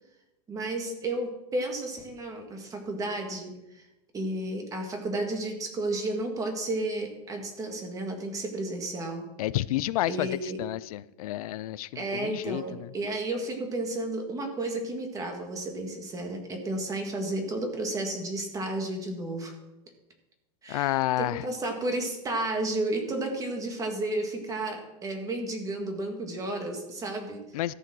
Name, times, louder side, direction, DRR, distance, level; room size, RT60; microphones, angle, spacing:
voice 1, 0.5-3.9 4.1-9.2 10.1-10.6 11.9-19.5 20.6-27.4, right 2 dB, 15° right, 3 dB, 2.0 m, -32 dB
voice 2, 9.4-12.9 20.7-21.4 27.5-27.7, left 15 dB, 70° left, 18 dB, 0.5 m, -30 dB
13.5 x 7.6 x 6.2 m, 0.94 s
supercardioid pair, 150°, 20 cm